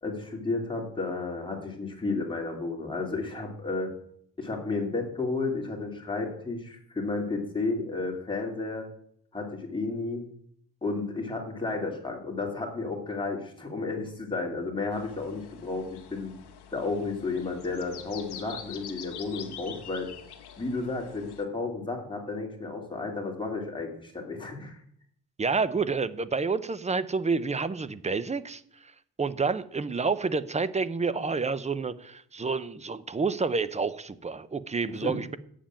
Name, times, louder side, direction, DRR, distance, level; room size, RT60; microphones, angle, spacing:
voice 1, 0.0-3.9 4.4-8.9 9.3-10.2 10.8-16.3 16.7-20.1 20.6-24.8 34.9-35.2, left 3 dB, 15° left, 2.6 m, -32 dB
sound 1, 14.9-21.4, left 9 dB, 85° left, 1.5 m, -46 dB
voice 2, 25.4-28.6 29.2-35.4, right 4 dB, 20° right, 0.5 m, -29 dB
8.6 x 7.5 x 8.9 m
wide cardioid pair, 150°, 39 cm